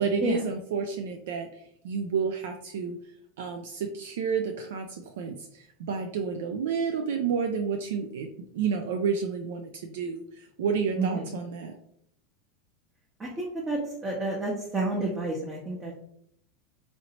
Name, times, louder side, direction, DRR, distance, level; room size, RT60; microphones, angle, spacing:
voice 1, 0.0-3.0 3.4-8.3 8.5-11.7, right 6 dB, 70° right, 5 dB, 0.3 m, -30 dB
voice 2, 11.0-11.3 13.2-15.9, right 2 dB, 20° right, -4 dB, 0.8 m, -30 dB
3.0 x 2.7 x 2.9 m, 0.69 s
hypercardioid pair, 85°, 0 cm